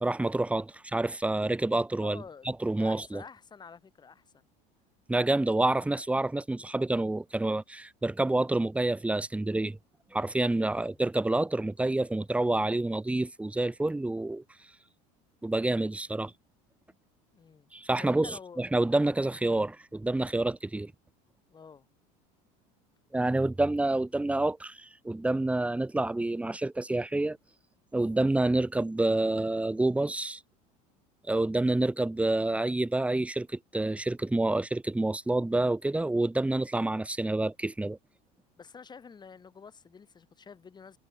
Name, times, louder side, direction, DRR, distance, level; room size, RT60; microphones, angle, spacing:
voice 1, 0.0-3.2 5.1-9.8 10.1-14.4 15.4-16.3 17.7-20.9 23.1-27.4 27.9-30.4 31.3-38.0, right 2 dB, 5° right, 1.6 m, -28 dB
voice 2, 2.0-2.5 2.8-4.5 10.7-11.0 17.3-17.7 18.0-18.6 21.5-21.8 38.6-41.0, left 6 dB, 25° left, 4.7 m, -49 dB
supercardioid pair, 115°, 18 cm